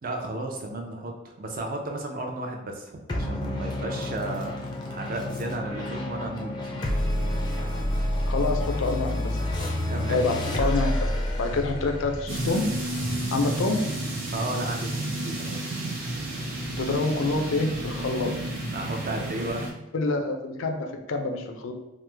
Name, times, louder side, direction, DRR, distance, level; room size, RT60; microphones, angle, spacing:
voice 1, 0.0-6.9 9.7-10.2 14.3-15.7 18.7-19.6, right 2 dB, 45° right, 2 dB, 0.5 m, -34 dB
sound 1, 3.1-13.9, left 1 dB, 20° left, 0.4 m, -29 dB
voice 2, 8.3-9.4 10.1-11.1 11.4-12.7 13.3-13.9 16.8-18.3 19.9-21.7, left 3 dB, 85° left, 4 dB, 0.4 m, -27 dB
sound 2, 12.3-19.7, right 1 dB, 75° right, 0.9 m, -31 dB
3.1 x 2.0 x 3.3 m, 0.97 s
head